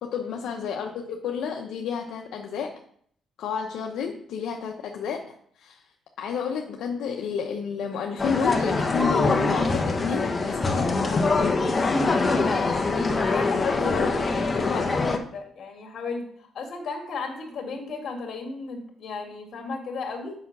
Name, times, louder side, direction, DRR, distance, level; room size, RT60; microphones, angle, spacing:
voice 1, 0.0-2.7 3.4-5.8 6.2-11.7 13.8-15.0, left 6 dB, 80° left, 2 dB, 0.8 m, -31 dB
sound 1, 8.2-15.2, left 3 dB, 30° left, 1.0 m, -23 dB
voice 2, 12.2-12.7 13.3-13.8 14.1-16.3 16.5-20.3, left 4 dB, 60° left, 2 dB, 2.4 m, -35 dB
7.1 x 5.7 x 6.0 m, 0.64 s
cardioid pair, 90°, 0 cm